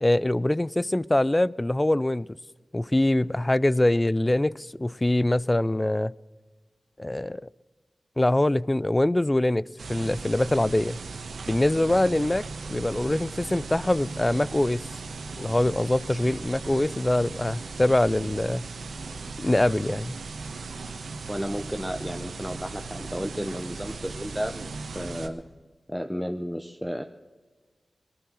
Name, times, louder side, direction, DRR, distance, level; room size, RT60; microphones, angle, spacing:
voice 1, 0.0-2.3 2.7-6.1 7.0-7.4 8.2-11.0 11.5-12.4 12.7-14.9 15.4-18.7 19.4-20.1, left 1 dB, 25° left, 0.4 m, -24 dB
sound 1, 9.8-25.3, right 4 dB, 85° right, 1.2 m, -37 dB
voice 2, 21.3-25.4 25.9-27.0, equal, ahead, 0.8 m, -33 dB
19.0 x 12.0 x 6.3 m
cardioid pair, 40°, 0 cm